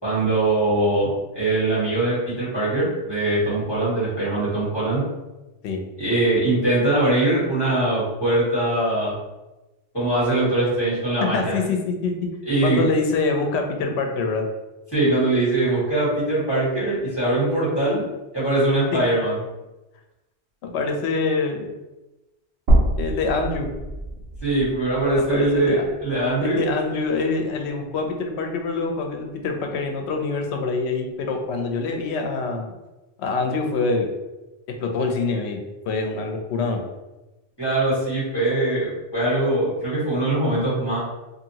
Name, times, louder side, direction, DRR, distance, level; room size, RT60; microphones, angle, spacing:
voice 1, 0.0-5.0 6.0-9.1 9.9-11.6 12.4-12.8 14.9-18.0 18.3-19.4 24.4-26.6 37.6-41.0, right 2 dB, 20° left, -10 dB, 1.6 m, -22 dB
voice 2, 11.2-12.3 12.6-14.5 18.9-19.0 20.6-21.7 23.0-23.7 25.2-25.9 26.4-32.7 33.2-34.1 34.7-36.8, left 3 dB, 75° left, 4 dB, 0.8 m, -25 dB
sound 1, 22.7-26.8 27.2-27.3 28.7-28.8, right 1 dB, 65° right, 0.9 m, -25 dB
2.7 x 2.6 x 2.8 m, 1.0 s
omnidirectional pair, 1.2 m